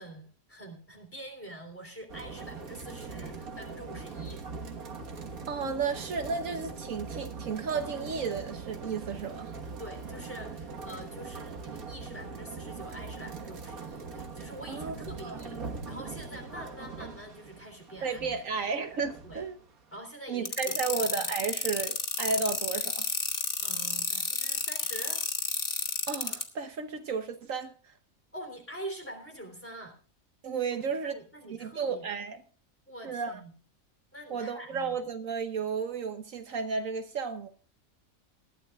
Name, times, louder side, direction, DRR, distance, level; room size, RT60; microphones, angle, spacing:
voice 1, 0.0-4.5 9.8-15.6 15.9-18.4 19.2-19.4 19.9-21.3 23.6-25.2 28.3-29.9 30.9-32.1 32.9-33.5 34.1-35.0, right 1 dB, 10° left, 3 dB, 3.4 m, -45 dB
sound 1, 2.1-20.0, right 4 dB, 90° right, 2.0 m, -42 dB
voice 2, 5.5-9.5 14.7-14.9 15.2-15.4 18.0-19.6 20.3-23.0 26.1-27.9 30.4-31.2 31.5-32.4 33.0-33.4 34.3-37.5, right 5 dB, 70° right, 7 dB, 1.4 m, -33 dB
sound 2, 20.5-26.4, left 4 dB, 40° left, 1.7 m, -30 dB
20.0 x 13.5 x 2.4 m, 0.37 s
omnidirectional pair, 1.5 m